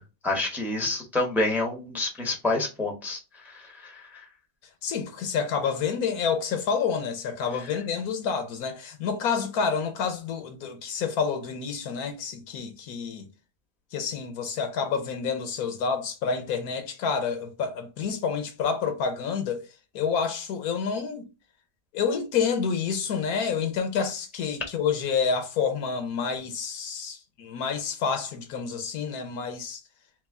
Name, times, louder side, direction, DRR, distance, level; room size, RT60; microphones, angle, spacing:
voice 1, 0.2-3.2 3.5-3.9, left 2 dB, ahead, 0.8 m, -28 dB
voice 2, 4.8-13.3 13.9-19.7 19.9-21.2 21.9-29.8, left 6 dB, 75° left, 1.2 m, -28 dB
3.2 x 3.1 x 3.5 m
omnidirectional pair, 1.6 m